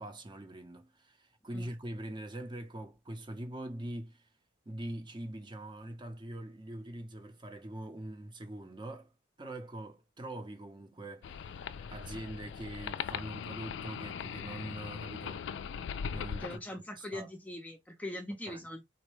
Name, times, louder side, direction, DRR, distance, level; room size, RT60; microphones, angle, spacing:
voice 1, 0.0-4.3 4.7-9.1 9.4-15.5 16.1-17.3 18.5-18.7, right 1 dB, 25° right, 0.7 m, -43 dB
sound 1, 11.2-16.6, left 7 dB, 70° left, 0.3 m, -40 dB
voice 2, 16.4-18.9, left 1 dB, 10° left, 0.5 m, -41 dB
4.0 x 2.2 x 3.0 m
head